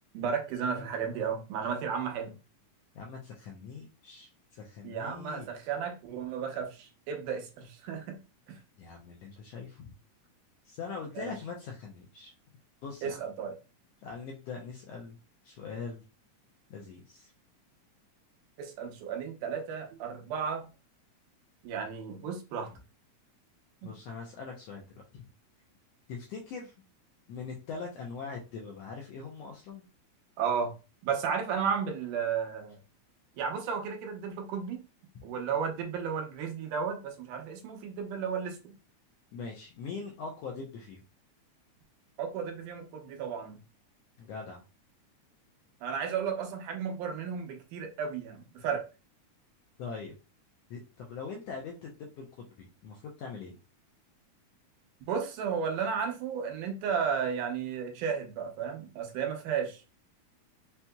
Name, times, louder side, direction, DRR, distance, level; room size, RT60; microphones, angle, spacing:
voice 1, 0.1-2.3 4.8-8.2 8.5-8.6 11.2-11.3 13.0-13.5 18.6-20.7 21.6-22.7 23.8-23.9 30.4-30.7 31.0-32.8 33.4-34.8 35.2-38.8 42.2-43.6 45.8-48.8 55.1-59.8, right 6 dB, 90° right, 2.4 m, -33 dB
voice 2, 2.9-5.5 8.8-9.9 10.6-12.3 12.8-13.2 14.0-15.2 15.4-16.0 16.7-17.3 23.8-25.3 26.1-26.7 27.3-29.8 39.3-41.0 44.2-44.6 49.8-50.1 50.7-53.5, left 5 dB, 75° left, 1.5 m, -42 dB
5.7 x 2.7 x 2.2 m
omnidirectional pair, 3.5 m